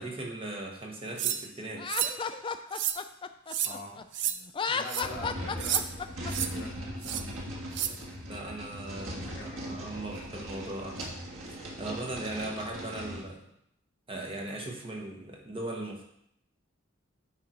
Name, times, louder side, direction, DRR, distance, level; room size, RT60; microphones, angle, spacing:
voice 1, 0.0-1.9 8.2-11.1 11.4-13.5 14.1-16.1, right 2 dB, 25° right, 1 dB, 1.3 m, -38 dB
sound 1, 1.2-1.4 1.9-2.2 2.7-3.0 3.5-3.7 4.1-4.3 4.9-5.0 5.6-5.8 6.3-6.5 7.0-7.2 7.7-7.9, right 10 dB, 60° right, 0.5 m, -30 dB
Laughter, 1.8-4.0 4.5-6.3, left 5 dB, 25° left, 0.3 m, -33 dB
voice 2, 3.6-4.1 4.7-7.6 8.9-10.0, left 1 dB, 55° left, -2 dB, 1.8 m, -45 dB
sound 2, 5.0-13.3, equal, 85° right, 1.6 m, -39 dB
10.5 x 3.9 x 4.4 m, 0.73 s
head